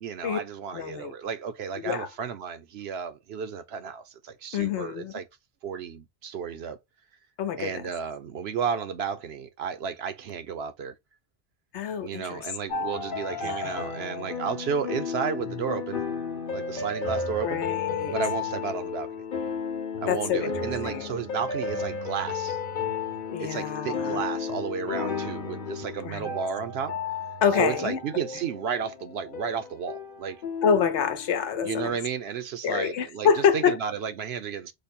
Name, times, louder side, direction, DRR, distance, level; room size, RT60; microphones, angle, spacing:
voice 1, 0.0-5.3 5.6-6.8 7.6-10.9 12.0-16.0 16.5-17.6 18.1-19.1 20.0-22.6 23.4-27.0 27.6-30.4 31.6-34.7, right 6 dB, 70° right, 0.9 m, -32 dB
voice 2, 0.7-1.1 1.8-2.1 4.5-5.1 7.4-7.8 11.7-12.5 13.4-13.8 17.4-18.1 20.1-21.1 23.3-24.2 26.0-26.3 27.4-28.0 30.6-32.0 32.6-33.8, left 7 dB, 85° left, 1.0 m, -26 dB
sound 1, 12.7-31.9, left 5 dB, 50° left, 1.0 m, -33 dB
5.2 x 2.1 x 4.2 m
omnidirectional pair, 1.1 m